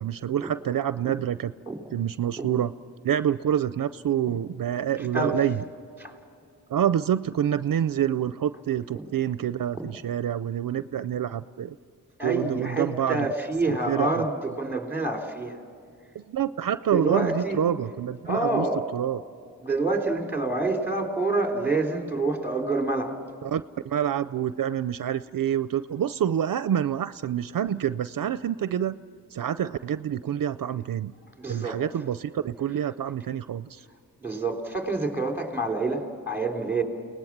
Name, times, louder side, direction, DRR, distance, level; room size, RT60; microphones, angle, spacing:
voice 1, 0.0-1.5 1.9-2.7 3.0-5.6 6.7-11.8 12.2-13.3 13.9-14.2 16.3-18.7 18.9-19.2 23.4-29.0 29.3-31.1 31.5-33.8, right 10 dB, 65° right, 15 dB, 0.5 m, -27 dB
voice 2, 5.0-5.4 6.0-6.1 8.9-9.1 12.2-15.6 16.9-17.6 18.2-18.8 19.6-23.2 31.4-31.8 34.2-36.8, right 2 dB, 5° right, 3 dB, 3.4 m, -27 dB
29.5 x 19.0 x 7.3 m, 2.4 s
wide cardioid pair, 90°, 35 cm